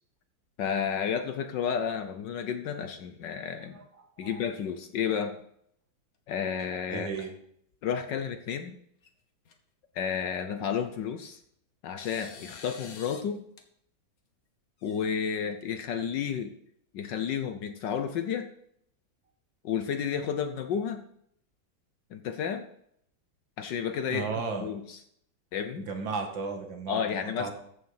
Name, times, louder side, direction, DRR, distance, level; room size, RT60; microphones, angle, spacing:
voice 1, 0.6-3.8 4.2-5.4 6.3-7.1 7.8-8.8 9.9-11.4 11.8-13.4 14.8-16.5 16.9-18.5 19.6-21.0 22.1-22.6 23.6-24.3 24.6-25.0 25.5-25.9 26.9-27.5, left 7 dB, 70° left, 8 dB, 1.4 m, -31 dB
voice 2, 3.7-4.4 6.9-7.3 24.1-24.7 25.9-27.5, right 4 dB, 70° right, 4 dB, 2.5 m, -35 dB
sound 1, 6.6-7.3 7.7-8.2 9.0-9.1 9.5-9.6 10.9-11.5 12.0-13.3 13.6-13.7 14.8-15.6, left 5 dB, 50° left, 1.6 m, -49 dB
14.0 x 6.9 x 5.6 m, 0.70 s
omnidirectional pair, 2.1 m